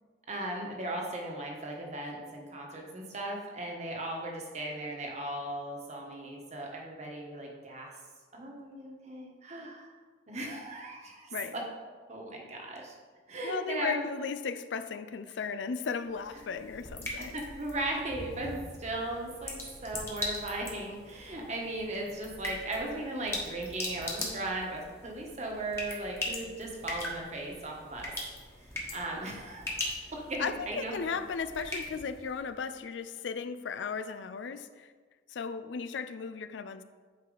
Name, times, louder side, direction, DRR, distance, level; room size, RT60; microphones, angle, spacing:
voice 1, 0.3-7.9 8.3-9.9 10.3-11.6 12.1-12.9 13.3-14.0 17.2-28.1 28.6-30.9, right 2 dB, 40° right, 0 dB, 1.3 m, -37 dB
voice 2, 13.4-17.4 30.4-34.9 35.3-36.8, left 5 dB, 90° left, 11 dB, 0.4 m, -36 dB
sound 1, 16.1-32.5, left 1 dB, 15° left, 1.3 m, -41 dB
9.4 x 4.7 x 3.9 m, 1.5 s
head